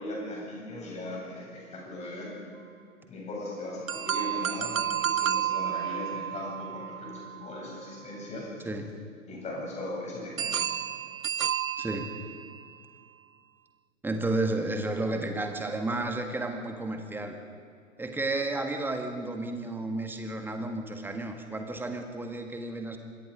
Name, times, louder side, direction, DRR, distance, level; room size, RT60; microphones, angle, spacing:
voice 1, 0.0-2.3 3.1-8.5 9.3-10.7, left 1 dB, 15° left, -3 dB, 7.9 m, -38 dB
sound 1, 3.9-8.0 10.4-12.7, right 9 dB, 75° right, 0.7 m, -31 dB
voice 2, 11.8-12.1 14.0-17.4 18.0-23.0, right 2 dB, 5° right, 5 dB, 1.7 m, -32 dB
26.5 x 21.5 x 5.1 m, 2.3 s
figure-of-eight pair, 115°, 40 cm